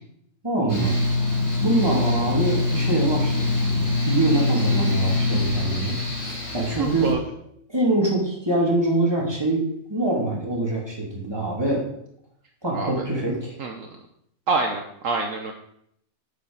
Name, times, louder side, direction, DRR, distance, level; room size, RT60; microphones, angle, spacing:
voice 1, 0.4-0.9 1.6-5.9 6.2-7.1 7.7-11.8 12.6-13.5, right 1 dB, 15° right, -3 dB, 3.1 m, -24 dB
Mechanical fan, 0.7-7.1, left 2 dB, 10° left, 3.6 m, -24 dB
voice 2, 6.8-7.2 12.7-12.9 13.6-13.9 14.5-15.5, right 4 dB, 65° right, 3 dB, 1.3 m, -26 dB
8.9 x 7.3 x 5.5 m, 0.72 s
omnidirectional pair, 1.5 m